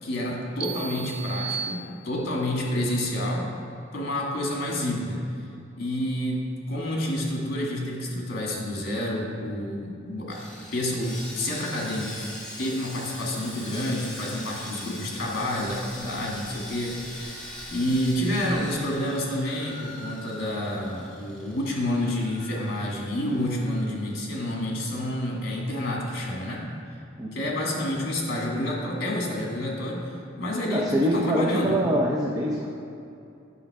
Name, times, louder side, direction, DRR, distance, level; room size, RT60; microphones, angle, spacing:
voice 1, 0.0-3.5 3.9-5.2 5.8-10.4 10.7-12.3 12.6-26.6 27.3-30.8 31.1-31.8, left 1 dB, 50° left, -2 dB, 1.9 m, -29 dB
sound 1, 0.6-2.5, right 6 dB, 50° right, 0.5 m, -35 dB
Sawing, 10.3-24.6 24.8-25.0 25.5-25.6, left 1 dB, 5° left, 1.5 m, -42 dB
voice 2, 30.7-32.7, equal, 20° right, -3 dB, 0.7 m, -24 dB
9.4 x 6.3 x 4.8 m, 2.6 s
head